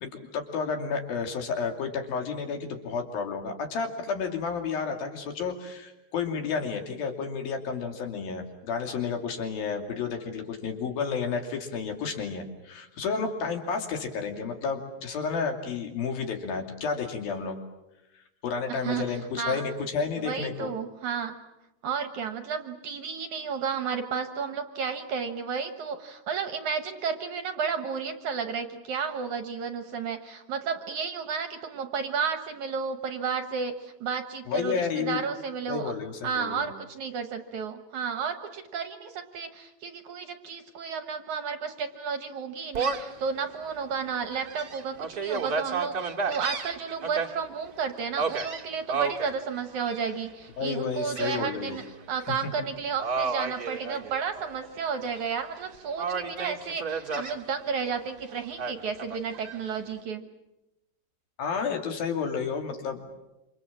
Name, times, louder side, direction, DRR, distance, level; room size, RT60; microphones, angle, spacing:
voice 1, 0.0-17.6 18.4-20.7 34.5-35.2 35.7-36.7 50.6-51.8 61.4-63.1, left 5 dB, 70° left, 4 dB, 4.5 m, -31 dB
voice 2, 18.7-19.0 19.4-19.6 20.2-21.4 21.8-35.9 36.2-51.8 52.1-60.2, right 6 dB, 60° right, 7 dB, 2.3 m, -32 dB
Gull seagull, 42.7-43.2 43.7-43.8 44.3-47.3 48.2-49.3 49.8-50.3 51.1-51.8 52.2-52.4 53.0-54.5 54.9-55.6 56.0-57.3 58.6-59.6, right 5 dB, 35° right, 1.5 m, -32 dB
28.0 x 26.5 x 7.5 m, 0.94 s
omnidirectional pair, 4.5 m